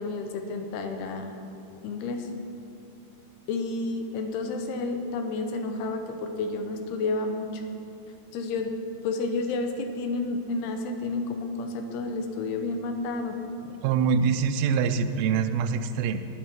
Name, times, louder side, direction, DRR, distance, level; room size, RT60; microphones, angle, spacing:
voice 1, 0.0-1.3 1.8-2.3 3.5-7.6 8.3-13.4, left 3 dB, 85° left, 5 dB, 3.0 m, -31 dB
voice 2, 13.8-16.2, right 6 dB, 80° right, 8 dB, 2.3 m, -24 dB
20.5 x 8.4 x 4.5 m, 2.7 s
omnidirectional pair, 4.5 m